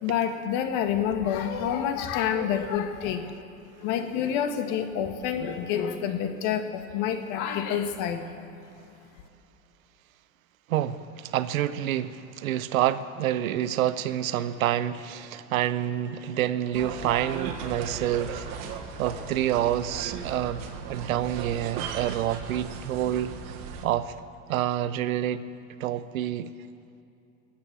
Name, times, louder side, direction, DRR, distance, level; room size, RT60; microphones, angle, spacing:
voice 1, 0.0-3.3 3.8-8.2, left 8 dB, 50° left, 1.7 m, -28 dB
voice 2, 10.7-18.6 19.0-23.3 23.8-24.1 24.5-25.5 25.8-26.5, right 12 dB, 85° right, 0.8 m, -28 dB
sound 1, 16.7-23.8, right 6 dB, 50° right, 1.8 m, -37 dB
20.0 x 8.6 x 7.5 m
supercardioid pair, 125°, 40 cm